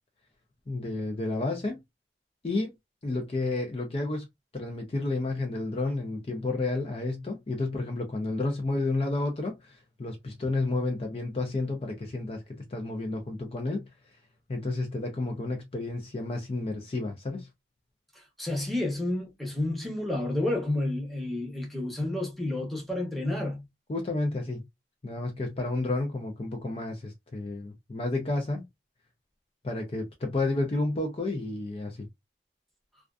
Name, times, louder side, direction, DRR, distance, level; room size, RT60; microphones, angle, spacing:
voice 1, 0.7-1.8 2.4-2.7 3.0-4.3 4.5-12.4 12.7-13.8 14.5-17.5 23.9-24.6 25.0-28.6 29.6-32.1, left 2 dB, 30° left, 0.4 m, -31 dB
voice 2, 18.4-23.6, left 1 dB, ahead, 0.7 m, -30 dB
2.4 x 2.3 x 2.2 m
head